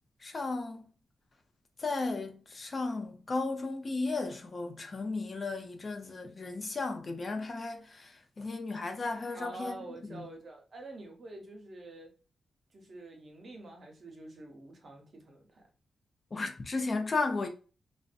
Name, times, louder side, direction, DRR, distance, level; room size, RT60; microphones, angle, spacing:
voice 1, 0.2-0.9 1.8-9.8 10.1-10.3 16.3-17.5, left 3 dB, 40° left, 0.5 m, -34 dB
voice 2, 9.3-12.1 12.7-15.6, right 2 dB, 55° right, 0.8 m, -46 dB
2.6 x 2.1 x 2.5 m
cardioid pair, 70°, 0 cm